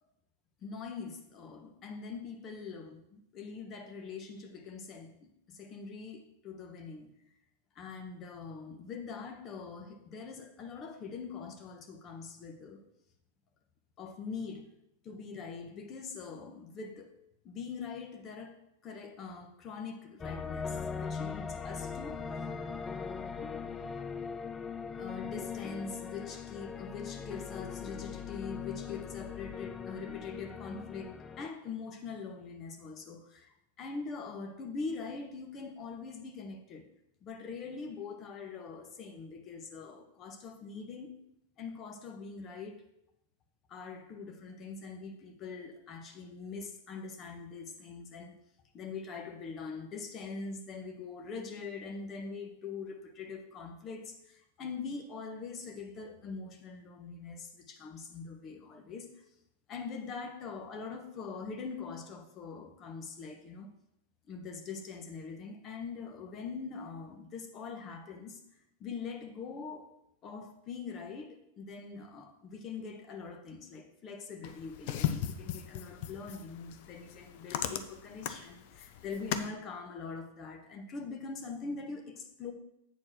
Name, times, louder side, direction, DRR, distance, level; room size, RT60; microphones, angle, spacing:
voice 1, 0.6-7.1 7.7-12.8 14.0-14.7 15.0-17.1 17.4-22.2 25.0-36.9 37.2-41.2 41.6-42.8 43.7-48.3 48.7-59.1 59.7-63.7 64.3-68.4 68.8-69.9 70.2-82.5, left 5 dB, 35° left, 1.3 m, -43 dB
sound 1, 20.2-31.5, left 6 dB, 20° left, 0.5 m, -40 dB
sound 2, 74.4-79.5, left 10 dB, 55° left, 0.7 m, -37 dB
8.4 x 4.4 x 6.0 m
hypercardioid pair, 105°, 0 cm